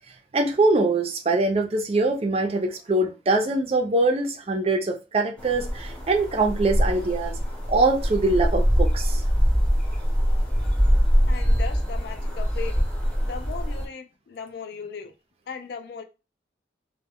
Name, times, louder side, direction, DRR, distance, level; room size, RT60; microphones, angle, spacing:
voice 1, 0.3-7.3 7.7-9.2, right 2 dB, 35° right, 0.4 m, -23 dB
sound 1, 5.4-13.9, equal, 5° left, 0.7 m, -23 dB
voice 2, 11.3-12.8 13.2-15.1 15.5-16.0, left 6 dB, 60° left, 0.3 m, -37 dB
2.1 x 2.1 x 3.4 m
head